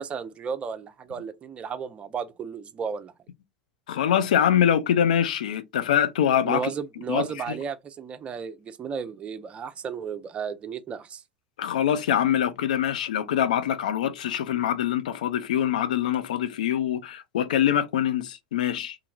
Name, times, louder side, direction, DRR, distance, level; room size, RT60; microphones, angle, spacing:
voice 1, 0.0-3.1 6.4-11.2, right 6 dB, 30° right, 0.5 m, -33 dB
voice 2, 3.9-6.7 7.1-7.2 11.6-19.0, left 9 dB, 75° left, 0.4 m, -24 dB
2.9 x 2.4 x 2.3 m
hypercardioid pair, 90°, 4 cm